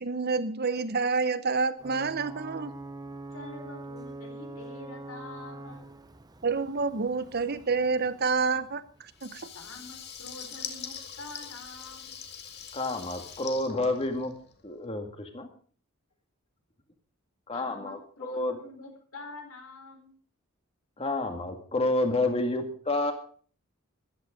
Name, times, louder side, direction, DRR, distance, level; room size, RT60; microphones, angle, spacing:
voice 1, 0.0-2.7 6.4-9.5, right 4 dB, 50° right, 13 dB, 0.9 m, -28 dB
Ocean / Boat Water vehicle / Alarm, 1.8-9.3, right 2 dB, 20° right, 0.9 m, -44 dB
voice 2, 3.3-5.8 9.5-12.1 17.5-20.1, left 2 dB, 85° left, 4 dB, 4.2 m, -46 dB
Water tap faucet / Liquid, 9.1-14.6, left 8 dB, 55° left, 2.0 m, -43 dB
voice 3, 12.7-14.3 14.6-15.5 17.5-18.6 21.0-23.1, left 2 dB, 30° left, 5 dB, 2.1 m, -29 dB
14.5 x 12.0 x 5.2 m, 0.43 s
head